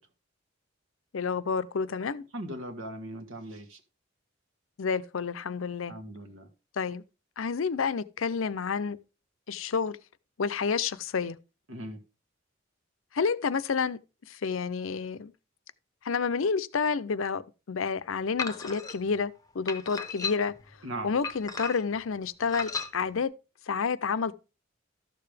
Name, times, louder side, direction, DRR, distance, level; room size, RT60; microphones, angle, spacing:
voice 1, 1.1-2.3 4.8-5.9 6.8-7.0 7.4-9.0 9.5-10.0 10.4-11.4 13.1-14.0 14.3-15.3 16.0-17.4 17.7-20.5 21.0-23.3 23.7-24.4, left 5 dB, 80° left, 0.6 m, -29 dB
voice 2, 2.3-3.8 5.9-6.5 11.7-12.0 20.8-21.1, right 1 dB, 85° right, 1.6 m, -39 dB
sound 1, 18.4-19.0 19.7-20.6 21.2-22.0 22.5-22.9, left 4 dB, 20° left, 0.7 m, -35 dB
12.5 x 6.8 x 3.4 m
head